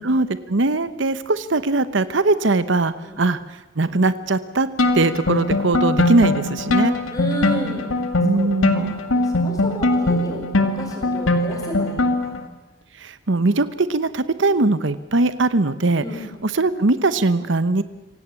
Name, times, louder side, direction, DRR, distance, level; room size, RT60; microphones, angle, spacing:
voice 1, 0.0-4.7 4.9-6.9 8.2-8.9 13.0-16.0 16.4-17.8, right 2 dB, 65° right, 14 dB, 0.9 m, -20 dB
sound 1, 4.8-12.4, left 2 dB, 85° left, 2.0 m, -21 dB
voice 2, 7.1-8.0 8.3-12.3 16.0-16.3, equal, 15° left, 2 dB, 5.7 m, -32 dB
26.0 x 17.5 x 8.4 m, 1.1 s
head